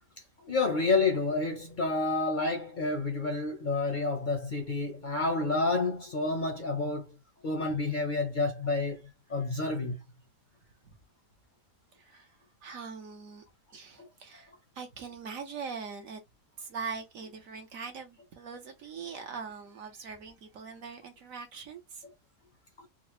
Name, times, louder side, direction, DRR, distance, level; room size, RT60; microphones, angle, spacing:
voice 1, 0.4-7.2 7.4-9.0 9.3-10.0 14.0-14.1 22.8-22.9, left 3 dB, 50° left, 0.6 m, -29 dB
voice 2, 11.9-13.4 13.7-16.2 16.6-22.0, right 5 dB, 65° right, 1.0 m, -42 dB
3.8 x 2.0 x 3.0 m
omnidirectional pair, 1.7 m